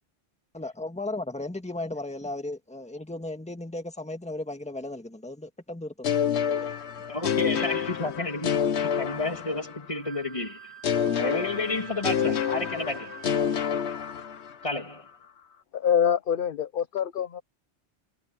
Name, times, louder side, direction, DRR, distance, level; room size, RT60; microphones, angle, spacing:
voice 1, 0.5-6.1, left 2 dB, 5° left, 1.9 m, -35 dB
sound 1, 6.0-10.0 10.8-14.7, left 8 dB, 70° left, 1.1 m, -28 dB
voice 2, 7.0-10.7 11.2-13.2 14.6-15.1, left 2 dB, 30° left, 2.5 m, -31 dB
Wind instrument woodwind instrument, 10.0-13.7, right 11 dB, 65° right, 6.1 m, -46 dB
voice 3, 15.7-17.4, left 8 dB, 55° left, 0.8 m, -25 dB
omnidirectional pair, 1.2 m